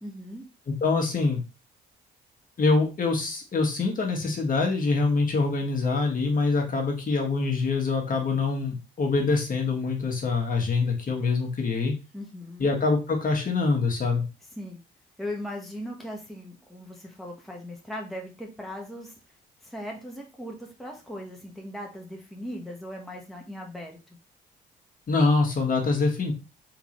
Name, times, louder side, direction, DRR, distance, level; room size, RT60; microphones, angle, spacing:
voice 1, 0.0-0.4 12.1-12.7 14.5-14.8 15.2-19.1 19.6-24.0, equal, ahead, -1 dB, 1.0 m, -38 dB
voice 2, 0.7-1.4 2.6-11.9 12.6-14.2 25.1-26.3, left 3 dB, 45° left, 1 dB, 1.4 m, -25 dB
3.8 x 3.8 x 3.1 m, 0.29 s
cardioid pair, 90°, 20 cm